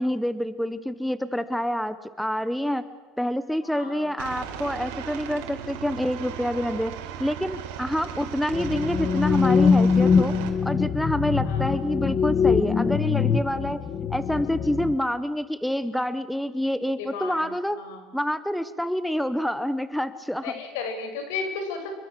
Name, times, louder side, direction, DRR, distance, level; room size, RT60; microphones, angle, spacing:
voice 1, 0.0-2.8 3.2-6.9 7.2-10.3 10.6-13.8 14.1-17.8 18.1-20.5, equal, ahead, 13 dB, 0.7 m, -27 dB
voice 2, 3.6-4.1 11.4-11.6 17.0-17.5 17.8-18.0 20.4-21.9, left 5 dB, 80° left, 6 dB, 6.7 m, -33 dB
Aircraft, 4.2-10.5, right 9 dB, 80° right, 4.7 m, -37 dB
sound 1, 8.5-14.9, left 6 dB, 25° left, 1.0 m, -23 dB
27.5 x 23.5 x 7.6 m, 1.3 s
cardioid pair, 175°, 0 cm